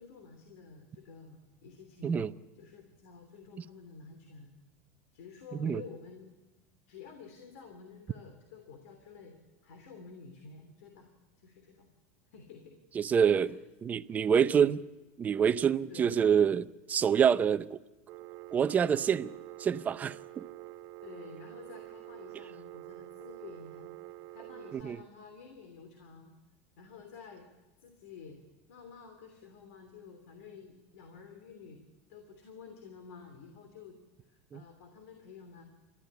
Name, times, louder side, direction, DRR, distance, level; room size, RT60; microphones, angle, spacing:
voice 1, 0.0-4.5 5.1-6.3 6.9-9.4 9.6-11.1 11.4-11.9 12.3-12.8 13.3-13.6 15.9-16.2 21.0-26.3 26.8-27.5 27.8-28.4 28.7-31.8 32.1-35.6, left 5 dB, 80° left, 3.0 m, -51 dB
voice 2, 12.9-13.5 13.8-14.8 15.2-17.8 18.5-19.3 19.6-20.5 24.7-25.0 34.5-34.6, right 7 dB, 20° right, 0.6 m, -26 dB
Telephone, 18.1-24.8, right 17 dB, 45° right, 0.9 m, -47 dB
29.0 x 13.5 x 8.3 m
supercardioid pair, 150°, 8 cm